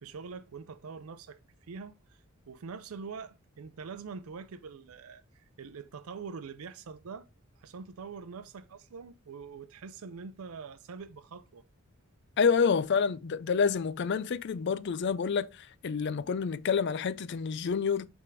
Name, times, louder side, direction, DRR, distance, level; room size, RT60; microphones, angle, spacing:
voice 1, 0.0-1.4 1.7-2.2 2.5-7.3 7.6-11.6, right 5 dB, 90° right, 0.5 m, -44 dB
voice 2, 12.4-18.1, left 6 dB, 55° left, 0.4 m, -28 dB
5.9 x 3.6 x 4.5 m
head